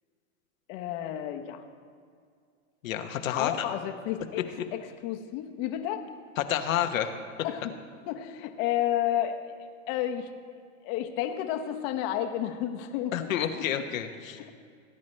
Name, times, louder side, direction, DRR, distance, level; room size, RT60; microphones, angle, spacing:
voice 1, 0.7-1.6 3.3-6.1 7.4-7.7 8.1-9.4 9.9-10.3 10.8-13.6 14.3-14.5, left 11 dB, 45° left, 6 dB, 1.1 m, -31 dB
voice 2, 2.8-3.7 6.4-7.1 13.1-14.4, left 10 dB, 80° left, 7 dB, 1.1 m, -29 dB
18.5 x 10.5 x 3.3 m, 2.2 s
hypercardioid pair, 135°, 39 cm